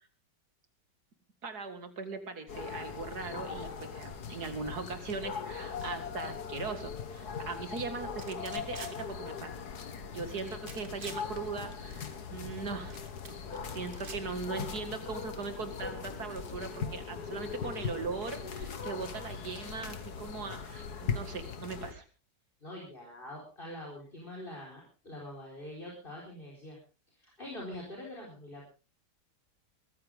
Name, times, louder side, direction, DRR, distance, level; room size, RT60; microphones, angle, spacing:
voice 1, 1.4-9.6 10.1-13.0 13.7-22.0, right 4 dB, 65° right, 8 dB, 2.6 m, -39 dB
sound 1, 2.5-21.9, left 6 dB, 70° left, 2.0 m, -40 dB
sound 2, 8.2-8.9 10.4-11.2 12.9-13.6 13.9-14.2, right 3 dB, 30° right, 2.0 m, -47 dB
voice 2, 22.6-26.8 27.2-28.7, left 1 dB, 30° left, -3 dB, 4.8 m, -44 dB
21.5 x 14.5 x 3.6 m, 0.34 s
omnidirectional pair, 1.8 m